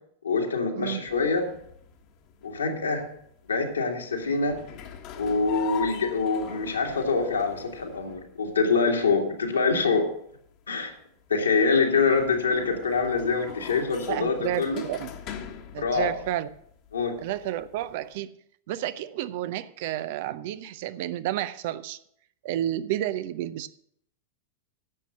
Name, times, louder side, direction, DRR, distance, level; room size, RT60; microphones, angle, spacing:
voice 1, 0.2-1.5 2.4-3.1 3.4-4.6 5.2-10.1 10.7-10.9 11.3-14.8 15.8-16.1 16.9-17.2, left 4 dB, 75° left, 1 dB, 2.1 m, -25 dB
sound 1, 1.1-18.1, left 9 dB, 40° left, 1.4 m, -43 dB
voice 2, 14.1-15.1 15.7-16.5 17.2-18.3 18.7-22.0 22.4-23.7, right 12 dB, 50° right, 14 dB, 0.6 m, -31 dB
11.0 x 7.6 x 6.4 m, 0.68 s
figure-of-eight pair, 90°, 0 cm